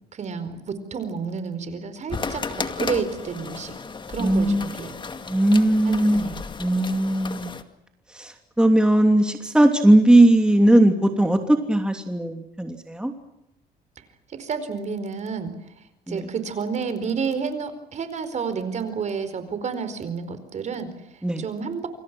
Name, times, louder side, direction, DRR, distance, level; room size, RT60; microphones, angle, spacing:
voice 1, 0.1-2.4 2.8-3.7 4.1-4.9 5.8-6.4 14.3-15.5 16.1-21.9, right 5 dB, 45° right, 11 dB, 4.6 m, -30 dB
sound 1, 2.1-7.6, left 4 dB, 30° left, 2.2 m, -34 dB
voice 2, 4.2-4.7 5.3-6.3 6.6-7.5 8.1-13.1 16.1-16.3 21.2-21.4, right 1 dB, 5° right, 4 dB, 2.8 m, -18 dB
28.0 x 26.0 x 6.3 m, 0.84 s
cardioid pair, 110°, 17 cm